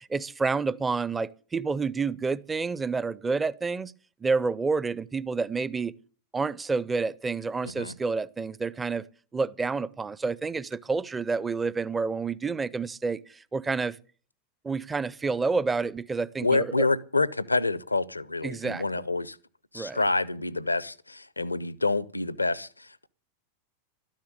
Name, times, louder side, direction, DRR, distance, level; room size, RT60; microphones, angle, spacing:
voice 1, 0.0-3.9 4.2-5.9 6.3-9.1 9.3-14.0 14.6-16.9 18.4-18.8 19.7-20.0, right 4 dB, 15° right, 0.6 m, -29 dB
voice 2, 16.4-19.4 19.7-23.1, left 3 dB, 80° left, 0.6 m, -27 dB
13.0 x 10.5 x 8.0 m
figure-of-eight pair, 90°, 0 cm